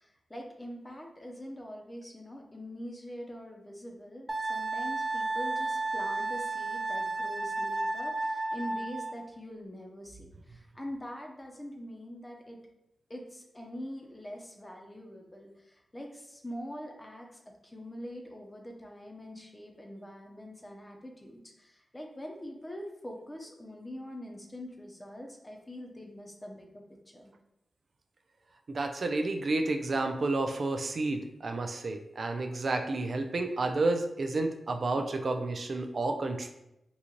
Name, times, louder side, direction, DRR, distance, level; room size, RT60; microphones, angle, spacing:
voice 1, 0.0-12.6 13.1-26.8 27.1-27.3, equal, 25° left, 1 dB, 0.8 m, -44 dB
Wind instrument woodwind instrument, 4.3-9.1, right 2 dB, 20° right, 0.6 m, -32 dB
voice 2, 28.7-36.5, right 2 dB, 60° right, 5 dB, 0.3 m, -30 dB
3.8 x 2.4 x 2.9 m, 0.87 s
cardioid pair, 45°, 0 cm